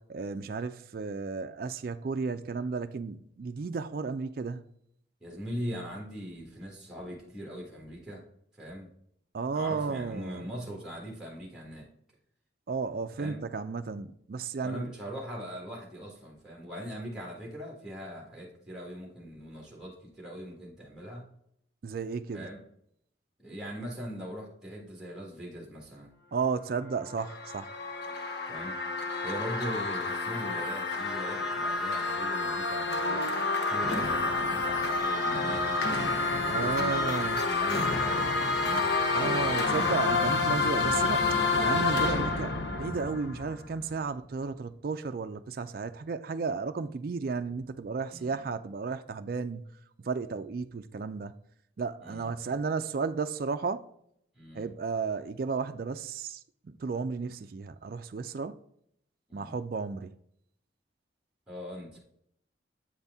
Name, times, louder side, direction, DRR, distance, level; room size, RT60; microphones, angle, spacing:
voice 1, 0.0-4.7 9.3-10.5 12.7-14.9 21.8-22.5 26.3-27.7 36.5-37.4 39.1-41.3 41.6-49.6 50.0-51.3 51.8-53.9 54.6-56.4 56.8-58.6 59.3-60.1, right 4 dB, 50° right, 0.3 m, -33 dB
voice 2, 5.2-8.2 8.6-8.9 9.5-11.9 13.2-13.4 14.6-21.3 22.3-22.6 23.4-26.1 28.5-28.7 29.2-33.3 33.6-35.8 36.3-38.9 48.1-48.5 52.0-52.6 54.3-54.7 59.3-59.6 61.5-62.0, equal, 5° right, 1.5 m, -41 dB
sound 1, 26.9-43.9, left 3 dB, 65° left, 0.8 m, -29 dB
7.8 x 4.1 x 3.5 m
head